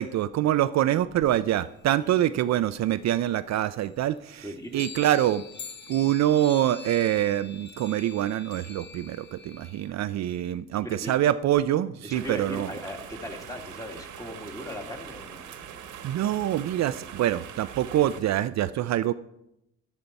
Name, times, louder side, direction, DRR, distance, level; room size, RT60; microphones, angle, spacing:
voice 1, 0.0-4.5 4.7-5.4 5.9-12.7 16.0-19.1, right 12 dB, 60° right, 13 dB, 0.5 m, -25 dB
sound 1, 1.7-3.1 3.5-3.6 3.8-9.9, left 5 dB, 35° left, 0.9 m, -44 dB
voice 2, 4.4-4.8 9.6-10.0 10.8-11.1 12.0-15.4, left 1 dB, 10° left, 3 dB, 2.0 m, -38 dB
sound 2, 12.1-18.2, right 8 dB, 85° right, 1.4 m, -42 dB
11.0 x 10.5 x 4.1 m, 0.84 s
cardioid pair, 90°, 30 cm